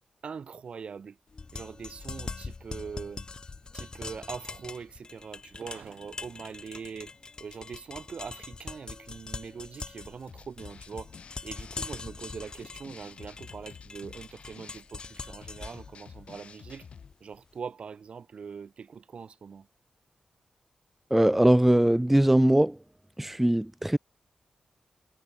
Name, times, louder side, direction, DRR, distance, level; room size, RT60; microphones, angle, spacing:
voice 1, 0.2-1.2 1.5-7.1 7.4-11.1 11.4-16.9 17.2-19.7, right 6 dB, 60° right, 2.5 m, -42 dB
sound 1, 1.3-17.4, left 4 dB, 40° left, 1.6 m, -43 dB
sound 2, 5.4-7.5, right 8 dB, 85° right, 5.7 m, -57 dB
sound 3, 10.3-17.1, left 6 dB, 65° left, 7.2 m, -50 dB
voice 2, 21.1-22.8 23.2-24.0, right 1 dB, 5° right, 0.4 m, -21 dB
wide cardioid pair, 105°, 2 cm